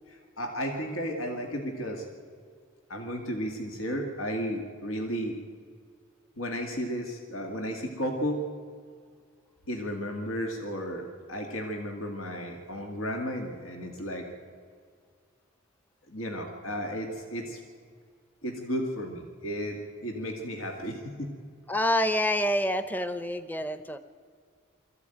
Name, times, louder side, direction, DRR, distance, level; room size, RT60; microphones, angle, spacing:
voice 1, 0.1-2.1 2.9-5.4 6.4-8.5 9.7-14.3 16.1-17.6 18.4-21.3, equal, 80° left, 3 dB, 2.1 m, -33 dB
voice 2, 21.7-24.0, left 1 dB, 10° left, 11 dB, 0.7 m, -27 dB
21.5 x 14.5 x 9.1 m, 2.1 s
head